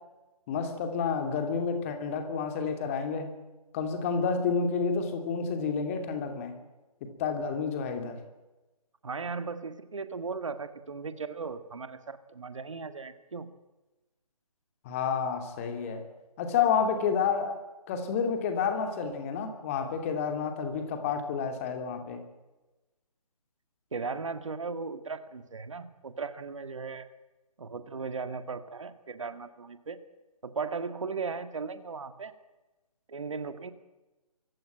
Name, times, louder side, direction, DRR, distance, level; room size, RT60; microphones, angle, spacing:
voice 1, 0.5-3.3 3.7-6.5 7.0-8.2 14.8-16.0 16.4-17.6 17.9-22.2, left 6 dB, 20° left, 6 dB, 2.7 m, -30 dB
voice 2, 9.0-13.5 23.9-27.1 27.6-30.0 30.4-32.3 33.1-33.7, right 4 dB, 55° right, 11 dB, 1.8 m, -37 dB
24.5 x 15.5 x 8.9 m, 1.1 s
figure-of-eight pair, 145°, 20 cm